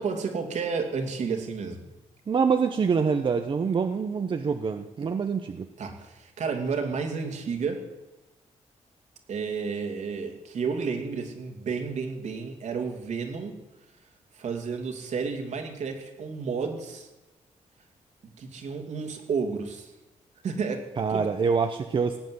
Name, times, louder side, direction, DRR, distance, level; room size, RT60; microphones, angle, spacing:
voice 1, 0.0-1.9 5.8-7.9 9.3-13.6 14.3-17.1 18.4-19.9 20.4-21.3, right 5 dB, 65° right, 4 dB, 2.7 m, -31 dB
voice 2, 2.3-5.7 21.0-22.2, right 5 dB, 40° right, 6 dB, 0.9 m, -25 dB
17.5 x 9.3 x 7.9 m, 1.0 s
cardioid pair, 120°, 13 cm